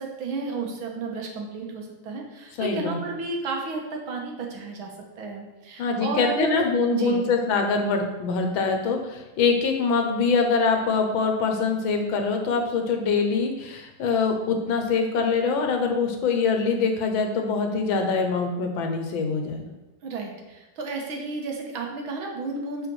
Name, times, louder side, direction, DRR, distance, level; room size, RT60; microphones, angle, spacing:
voice 1, 0.0-6.6 6.9-7.2 20.0-22.9, right 3 dB, 90° right, 1 dB, 2.0 m, -32 dB
voice 2, 2.6-3.0 5.8-19.7, left 4 dB, 80° left, 4 dB, 1.7 m, -24 dB
5.6 x 5.0 x 6.3 m, 1.1 s
omnidirectional pair, 2.2 m